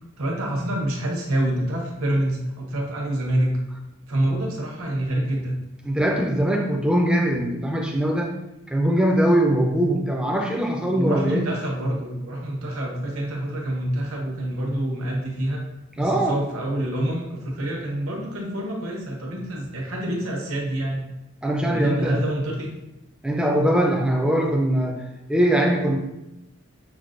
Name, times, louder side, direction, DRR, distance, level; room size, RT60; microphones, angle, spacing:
voice 1, 0.2-3.5 4.1-5.5 10.9-15.6 16.0-21.0 21.6-22.7, right 1 dB, 75° right, -2 dB, 0.9 m, -26 dB
voice 2, 5.8-8.3 8.7-11.5 16.0-16.4 21.4-22.2 23.2-26.0, right 1 dB, 5° right, 1 dB, 0.3 m, -21 dB
5.9 x 2.2 x 2.4 m, 0.92 s
head